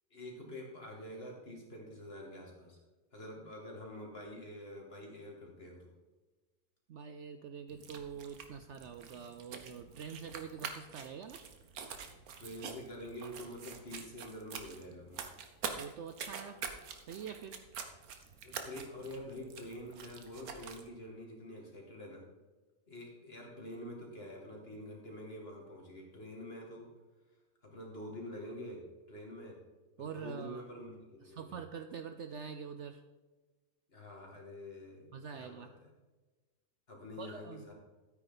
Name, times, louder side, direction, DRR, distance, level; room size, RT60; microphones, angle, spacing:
voice 1, 0.1-2.8 3.1-5.9 12.4-15.2 18.4-22.3 22.9-26.9 27.6-28.8 29.1-29.6 30.0-31.6 33.9-35.9 36.9-37.7, left 1 dB, 40° left, -1 dB, 2.7 m, -47 dB
voice 2, 6.9-11.5 15.7-16.6 17.1-17.6 30.0-30.7 31.2-33.0 35.1-35.7 37.2-37.6, right 6 dB, 65° right, 8 dB, 0.8 m, -45 dB
sound 1, 7.7-20.9, right 6 dB, 80° right, 1.5 m, -46 dB
13.0 x 9.2 x 4.0 m, 1.2 s
omnidirectional pair, 1.5 m